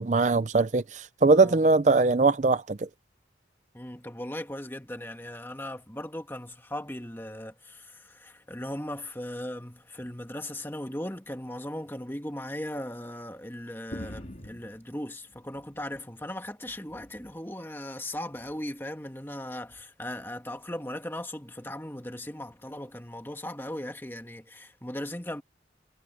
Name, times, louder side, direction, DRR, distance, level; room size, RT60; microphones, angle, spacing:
voice 1, 0.0-2.9, right 3 dB, 40° right, 0.5 m, -21 dB
voice 2, 1.3-1.6 3.7-25.4, left 1 dB, 10° left, 1.7 m, -38 dB
sound 1, 13.9-16.1 16.5-17.4 18.3-18.7 19.7-19.8, equal, 40° left, 3.2 m, -45 dB
head